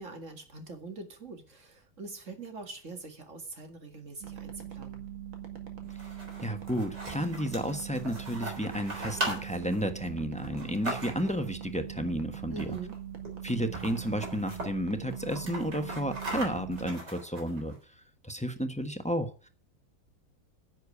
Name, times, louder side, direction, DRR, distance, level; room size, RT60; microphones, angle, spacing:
voice 1, 0.0-5.0 12.5-13.0, right 4 dB, 40° right, 5 dB, 2.3 m, -43 dB
sound 1, 4.2-16.9, right 9 dB, 85° right, 2.8 m, -42 dB
sound 2, 5.8-11.5 12.5-13.0 13.2-13.3 13.6-14.7 15.1-17.7, right 2 dB, 60° right, 4.6 m, -39 dB
voice 2, 6.4-12.7 13.4-17.7 18.2-19.5, equal, 5° left, 7 dB, 0.8 m, -32 dB
10.5 x 7.7 x 8.4 m, 0.40 s
omnidirectional pair, 2.1 m